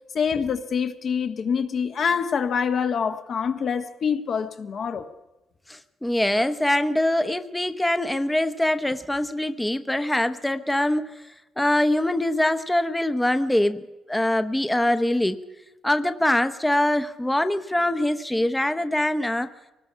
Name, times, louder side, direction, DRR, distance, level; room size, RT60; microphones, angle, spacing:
voice 1, 0.1-5.1, left 6 dB, 55° left, 1.5 m, -25 dB
voice 2, 5.7-11.1 11.6-13.8 14.1-15.4 15.8-19.5, left 1 dB, 10° left, 0.9 m, -23 dB
24.0 x 19.0 x 5.6 m
cardioid pair, 90°, 0 cm